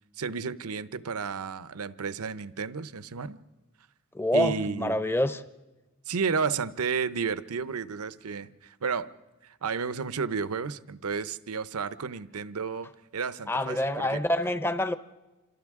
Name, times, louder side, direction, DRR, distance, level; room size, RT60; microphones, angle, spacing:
voice 1, 0.2-3.4 4.3-5.0 6.1-9.1 9.4-14.2, right 5 dB, 80° right, 0.7 m, -32 dB
voice 2, 4.1-5.4 13.5-14.9, left 1 dB, 10° left, 0.6 m, -26 dB
27.5 x 26.5 x 3.7 m
head